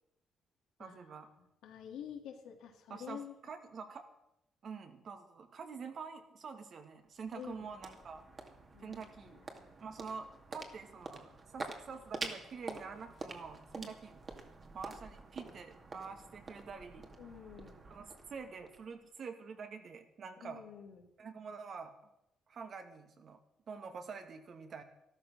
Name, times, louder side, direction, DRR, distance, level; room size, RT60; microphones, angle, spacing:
voice 1, 0.8-1.3 2.9-4.1 4.6-8.2 8.8-9.4 9.8-14.2 14.7-17.1 17.9-20.6 21.2-21.9 22.5-23.4 23.7-24.8, right 5 dB, 55° right, 6 dB, 2.1 m, -47 dB
voice 2, 1.6-3.3 7.3-7.7 8.7-9.4 13.7-13.9 17.2-17.8 20.4-21.1, left 8 dB, 85° left, 2 dB, 2.8 m, -48 dB
sound 1, 6.8-19.3, right 3 dB, 40° right, 2.4 m, -48 dB
13.0 x 13.0 x 6.3 m, 0.85 s
cardioid pair, 90°, 0 cm